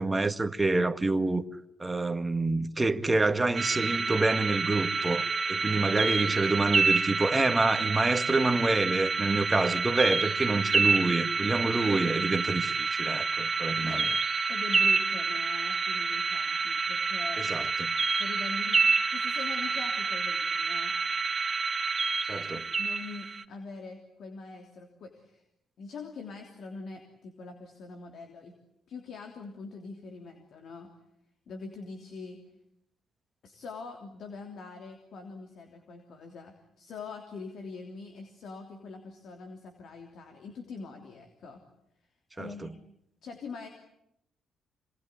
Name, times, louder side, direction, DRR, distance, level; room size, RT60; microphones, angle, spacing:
voice 1, 0.0-1.4 1.8-14.1 17.4-17.9 22.3-22.6 42.4-42.7, right 2 dB, 20° right, 1.5 m, -27 dB
sound 1, 3.5-23.4, right 4 dB, 35° right, 1.8 m, -28 dB
voice 2, 14.5-17.5 18.2-20.9 22.5-25.4 25.8-28.5 28.9-30.9 31.5-32.4 33.4-41.6 42.3-42.7 43.2-43.7, left 4 dB, 65° left, 3.2 m, -43 dB
26.5 x 20.0 x 10.0 m
cardioid pair, 90°, 0 cm